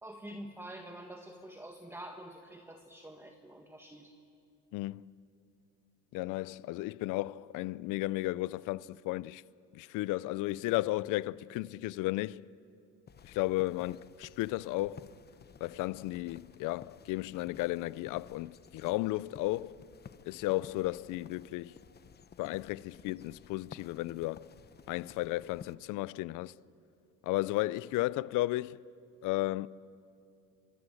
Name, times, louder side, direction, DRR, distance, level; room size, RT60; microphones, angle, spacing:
voice 1, 0.0-4.1, right 1 dB, 10° right, 1.7 m, -47 dB
voice 2, 4.7-5.1 6.1-9.4 9.7-12.5 13.2-15.1 15.6-19.8 20.3-21.7 22.4-24.5 24.9-26.5 27.2-28.8 29.2-29.7, left 18 dB, 70° left, 0.6 m, -34 dB
sound 1, 13.1-25.8, left 7 dB, 30° left, 1.0 m, -55 dB
29.5 x 25.5 x 7.8 m
cardioid pair, 110°, 32 cm